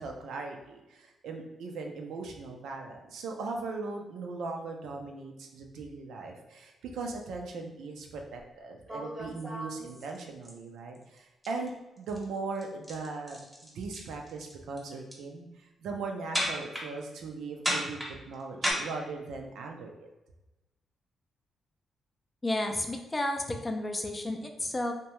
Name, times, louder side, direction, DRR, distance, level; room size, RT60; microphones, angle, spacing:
voice 1, 0.0-11.7 12.0-20.1, right 3 dB, 85° right, 2 dB, 0.4 m, -39 dB
sound 1, 8.4-8.5 8.9-10.5 10.9-11.2 11.4-11.7 12.0-12.2 12.5-14.5 14.8-15.2 16.3-16.8 17.6-18.7, equal, 10° right, 0.8 m, -33 dB
voice 2, 22.4-24.9, left 1 dB, 25° left, 4 dB, 0.4 m, -32 dB
2.7 x 2.2 x 3.0 m, 1.0 s
cardioid pair, 90°, 0 cm